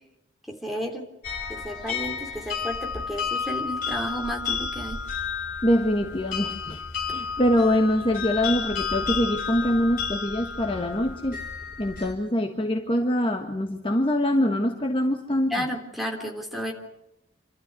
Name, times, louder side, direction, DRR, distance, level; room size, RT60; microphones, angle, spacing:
voice 1, 0.5-1.1 1.5-5.0 15.5-16.7, equal, ahead, 1 dB, 3.4 m, -32 dB
sound 1, 1.2-12.1, left 6 dB, 45° left, 5.2 m, -32 dB
voice 2, 5.6-11.4 11.8-15.5, left 1 dB, 25° left, 3 dB, 1.5 m, -24 dB
27.5 x 13.0 x 9.6 m, 0.91 s
head